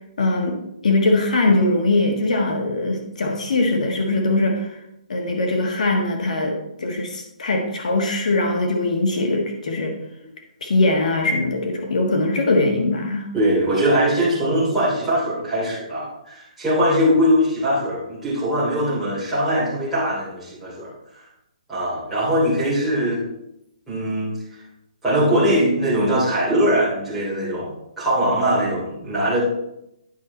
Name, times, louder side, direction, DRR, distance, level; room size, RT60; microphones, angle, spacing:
voice 1, 0.2-0.6 0.8-4.8 5.1-10.0 10.6-13.3, left 2 dB, 65° left, 2 dB, 1.6 m, -21 dB
voice 2, 13.3-20.9 21.7-23.2 23.9-24.3 25.0-27.7 28.0-29.4, equal, 5° right, -11 dB, 2.9 m, -21 dB
9.5 x 5.8 x 4.1 m, 0.81 s
hypercardioid pair, 175°, 4 cm